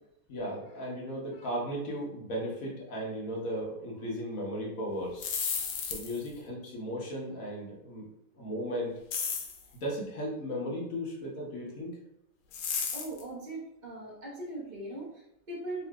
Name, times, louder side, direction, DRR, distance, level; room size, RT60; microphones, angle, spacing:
voice 1, 0.3-5.3 5.8-8.1 8.3-8.9 9.7-12.0, equal, 55° left, -3 dB, 1.1 m, -36 dB
sound 1, 5.0-6.3 9.1-9.6 12.5-13.2, left 6 dB, 85° left, 1.4 m, -33 dB
voice 2, 12.9-15.9, right 2 dB, 70° right, -5 dB, 0.4 m, -40 dB
3.7 x 3.0 x 2.3 m, 0.81 s
omnidirectional pair, 2.2 m